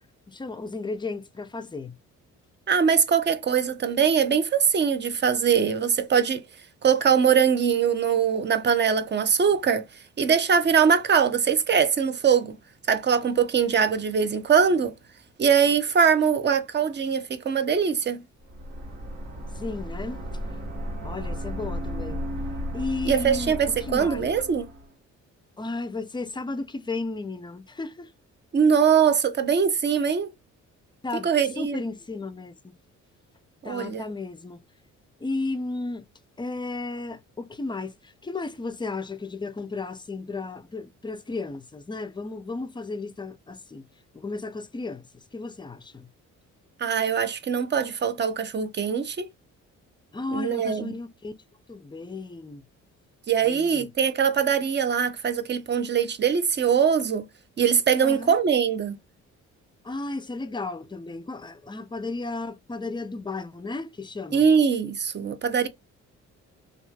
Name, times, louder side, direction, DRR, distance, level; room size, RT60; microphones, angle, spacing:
voice 1, 0.3-1.9 19.5-20.2 21.0-22.3 22.7-23.6 23.9-24.3 25.6-28.1 31.0-31.3 31.6-32.7 33.6-34.6 35.2-36.1 36.4-43.9 44.1-45.0 45.3-46.1 50.1-51.3 51.7-52.6 53.4-53.9 58.0-58.4 59.8-64.4, left 3 dB, 15° left, 0.4 m, -34 dB
voice 2, 2.7-6.4 6.8-9.8 10.2-12.6 12.9-14.9 15.4-18.2 23.1-24.7 28.5-30.3 31.2-31.8 33.6-34.1 46.8-49.3 50.3-50.9 53.3-57.2 57.6-59.0 64.3-65.7, right 7 dB, 35° right, 0.6 m, -22 dB
sound 1, 18.4-24.9, equal, 65° right, 1.4 m, -34 dB
3.0 x 2.4 x 2.2 m
cardioid pair, 90°, 30 cm